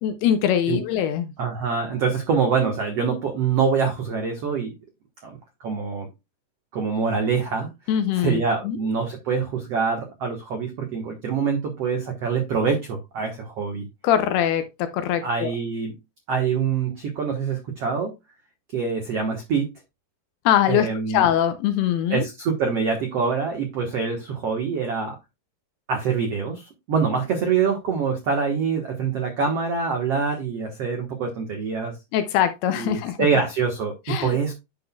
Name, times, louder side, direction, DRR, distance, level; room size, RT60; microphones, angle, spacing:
voice 1, 0.0-1.3 7.9-8.8 14.0-15.5 20.5-22.2 32.1-33.3 34.1-34.4, left 10 dB, 75° left, 2.6 m, -22 dB
voice 2, 1.4-4.7 5.2-5.4 5.6-6.1 6.7-7.7 8.2-13.8 15.2-15.9 16.3-18.1 18.7-19.7 20.7-21.2 22.1-25.2 25.9-31.9 32.8-34.5, right 5 dB, 75° right, 1.4 m, -25 dB
10.0 x 5.9 x 2.3 m
omnidirectional pair, 5.0 m